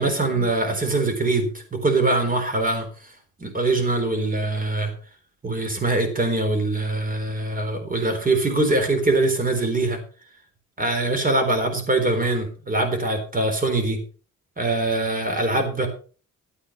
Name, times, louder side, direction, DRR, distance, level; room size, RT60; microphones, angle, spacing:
voice 1, 0.0-2.9 3.4-4.9 5.4-10.0 10.8-14.0 14.6-15.9, right 2 dB, 25° right, 6 dB, 4.0 m, -23 dB
13.5 x 8.4 x 5.5 m, 0.39 s
wide cardioid pair, 140°, 31 cm